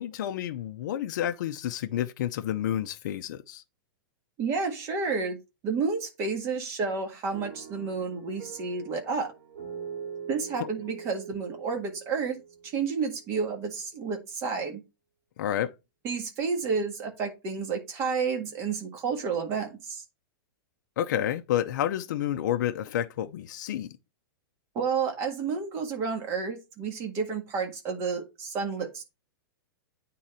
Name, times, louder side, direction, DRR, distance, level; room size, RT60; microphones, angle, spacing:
voice 1, 0.0-3.6 10.6-10.7 15.4-15.7 21.0-23.9, left 11 dB, 55° left, 0.7 m, -30 dB
voice 2, 4.4-5.4 5.6-9.3 10.3-14.8 16.0-20.0 24.7-29.0, right 5 dB, 25° right, 1.7 m, -30 dB
sound 1, 7.3-13.4, right 7 dB, 60° right, 2.7 m, -43 dB
9.0 x 3.9 x 4.2 m
supercardioid pair, 170°, 12 cm